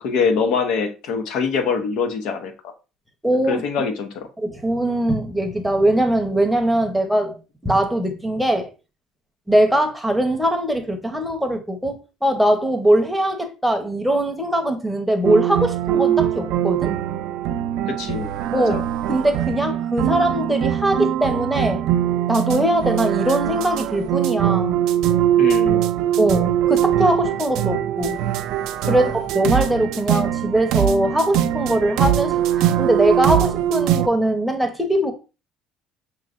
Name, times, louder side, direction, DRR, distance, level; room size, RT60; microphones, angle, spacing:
voice 1, 0.0-2.7 3.5-4.3 17.9-18.8 25.4-25.8 28.8-29.1, left 5 dB, 75° left, 0.8 m, -24 dB
voice 2, 3.2-3.6 4.4-7.4 7.6-8.7 9.5-16.9 18.5-18.8 19.1-21.8 22.3-24.8 26.2-28.2 28.9-32.4 32.8-35.1, right 1 dB, ahead, 0.8 m, -21 dB
sound 1, 15.2-34.1, right 11 dB, 75° right, 0.3 m, -22 dB
5.5 x 3.1 x 2.5 m
cardioid pair, 105°, 0 cm